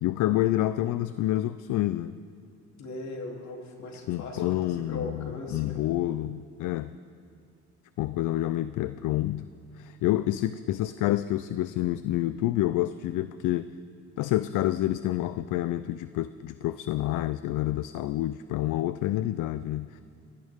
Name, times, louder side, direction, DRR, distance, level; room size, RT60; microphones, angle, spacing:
voice 1, 0.0-2.2 4.1-7.0 8.0-13.7 14.2-20.0, left 14 dB, 85° left, 13 dB, 0.5 m, -28 dB
voice 2, 2.8-5.8, left 2 dB, 65° left, 0 dB, 3.1 m, -39 dB
22.5 x 16.5 x 3.6 m, 2.3 s
cardioid pair, 90°, 30 cm